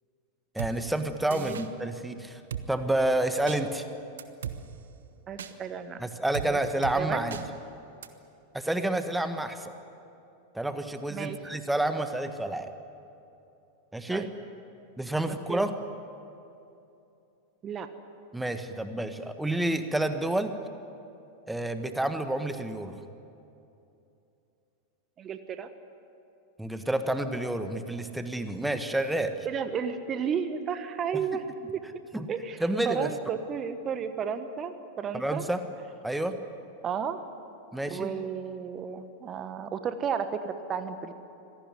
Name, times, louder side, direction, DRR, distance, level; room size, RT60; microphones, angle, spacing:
voice 1, 0.5-2.4 2.7-3.9 6.0-7.4 8.5-9.7 10.5-12.7 13.9-14.3 15.0-15.7 18.3-20.6 21.5-23.0 26.6-29.3 31.1-31.2 32.1-32.3 32.6-33.1 35.1-35.6 36.0-36.4 37.7-38.1, right 1 dB, 5° right, 9 dB, 1.6 m, -29 dB
Drum kit, 0.6-0.7 1.3-1.7 2.5-2.7 3.5-3.6 4.2-4.6 5.4-5.5 6.3-6.5 6.8-7.0 7.3-7.4 8.0-8.1, right 9 dB, 65° right, 1.2 m, -36 dB
voice 2, 5.3-6.0 6.4-6.6 6.9-7.4 11.1-11.4 14.1-14.3 15.5-15.6 17.6-17.9 25.2-25.7 29.4-31.4 31.7-31.8 32.3-35.4 36.8-37.2 37.9-41.1, right 7 dB, 25° right, 10 dB, 1.3 m, -33 dB
25.5 x 18.0 x 9.3 m, 2.8 s
figure-of-eight pair, 90°, 0 cm